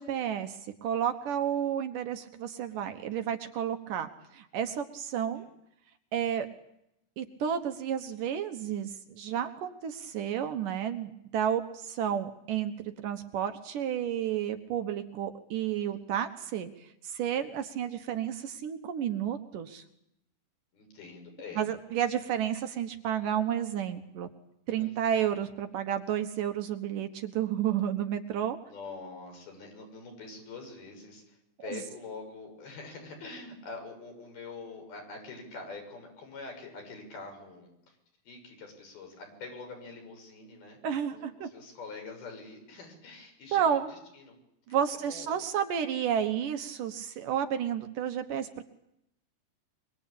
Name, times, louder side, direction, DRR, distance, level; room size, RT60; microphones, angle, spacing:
voice 1, 0.0-5.4 6.1-6.5 7.2-12.7 13.0-16.7 17.0-19.8 21.6-24.3 24.7-28.6 40.8-41.5 43.5-43.9 44.7-48.6, right 9 dB, 70° right, 8 dB, 2.6 m, -31 dB
voice 2, 20.7-21.6 24.7-25.1 28.6-38.0 38.2-40.8 41.1-44.3 44.7-44.8 45.1-45.4, left 3 dB, 80° left, 3 dB, 8.4 m, -45 dB
24.0 x 23.5 x 8.5 m, 0.81 s
omnidirectional pair, 4.3 m